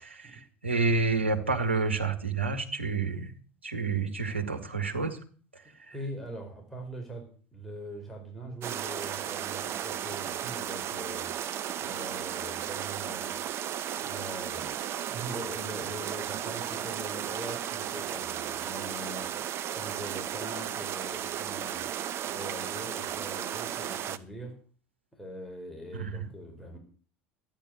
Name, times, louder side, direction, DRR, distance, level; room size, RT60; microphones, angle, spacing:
voice 1, 0.0-3.3 3.6-5.2 5.5-5.6 25.9-26.3, right 4 dB, 85° right, 4 dB, 1.8 m, -29 dB
voice 2, 5.9-11.3 11.8-13.4 13.9-14.8 15.1-19.3 19.7-21.9 22.3-24.6 25.1-26.8, right 1 dB, 5° left, 0 dB, 4.9 m, -42 dB
sound 1, 8.6-24.2, right 10 dB, 45° right, 0.9 m, -35 dB
13.5 x 10.5 x 6.6 m, 0.42 s
figure-of-eight pair, 70°, 6 cm